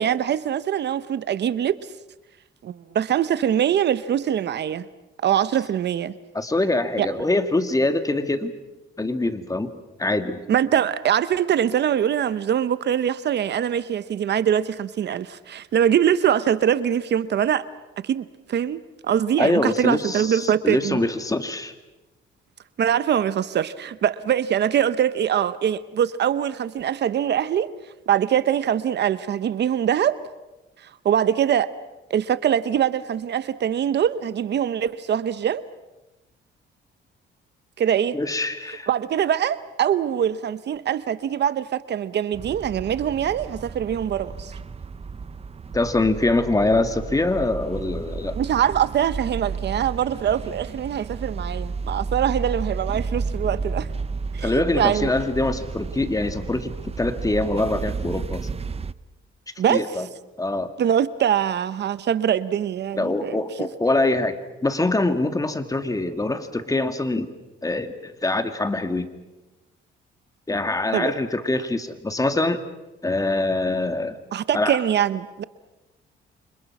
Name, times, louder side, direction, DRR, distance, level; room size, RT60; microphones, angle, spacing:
voice 1, 0.0-1.8 2.6-4.9 5.2-6.1 7.0-7.1 10.5-17.6 18.0-21.0 22.8-27.7 28.1-30.2 30.8-31.7 32.1-35.6 37.8-38.2 38.9-44.5 48.4-53.9 54.3-55.1 59.6-59.9 60.8-63.4 70.9-71.2 74.3-75.4, right 9 dB, 60° right, 0.9 m, -23 dB
voice 2, 6.3-8.5 9.0-9.7 10.0-10.4 19.4-21.7 38.1-38.9 45.7-48.4 54.4-56.7 57.0-58.5 59.7-60.1 60.4-60.7 63.0-64.4 64.6-67.3 67.6-69.1 70.5-72.6 73.0-74.2 74.5-74.8, left 2 dB, 15° left, 2.1 m, -24 dB
sound 1, 42.3-58.9, right 4 dB, 30° right, 0.8 m, -32 dB
29.0 x 25.5 x 6.1 m
cardioid pair, 90°, 20 cm